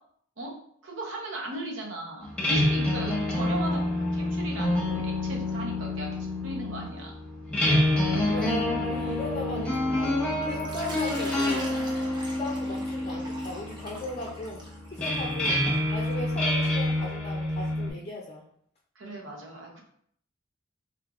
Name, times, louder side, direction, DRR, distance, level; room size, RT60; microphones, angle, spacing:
voice 1, 0.4-7.1 12.0-12.1 19.0-19.8, right 2 dB, 80° right, 0 dB, 0.9 m, -38 dB
sound 1, 2.2-17.9, left 1 dB, 5° left, 0.9 m, -28 dB
voice 2, 8.3-12.0 12.4-14.6 14.9-15.6 15.9-18.4, left 1 dB, 35° left, -2 dB, 0.5 m, -37 dB
Water / Liquid, 10.6-16.1, equal, 25° right, 0.7 m, -42 dB
3.5 x 3.3 x 2.4 m, 0.65 s
head